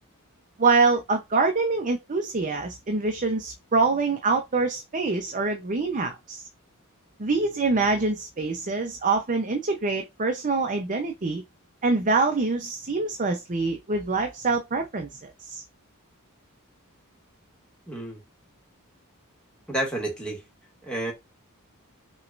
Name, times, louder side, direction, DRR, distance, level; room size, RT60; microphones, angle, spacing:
voice 1, 0.6-6.5 7.2-11.4 11.8-15.6, right 3 dB, 35° right, 0.7 m, -25 dB
voice 2, 17.9-18.2 19.7-20.4 20.8-21.1, right 1 dB, 5° left, 2.0 m, -30 dB
6.4 x 3.1 x 2.5 m
head